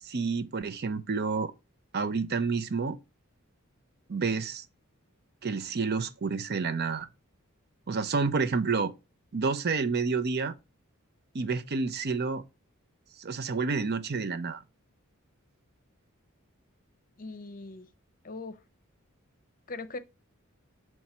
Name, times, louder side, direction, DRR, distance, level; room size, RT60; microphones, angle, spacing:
voice 1, 0.0-1.5 1.9-3.0 4.1-4.6 5.4-7.1 7.9-8.9 9.3-10.5 11.3-12.4 13.2-14.6, right 4 dB, 50° right, 0.6 m, -29 dB
voice 2, 17.2-17.9 18.2-18.6 19.7-20.0, left 3 dB, 40° left, 0.7 m, -40 dB
7.1 x 3.1 x 4.4 m
head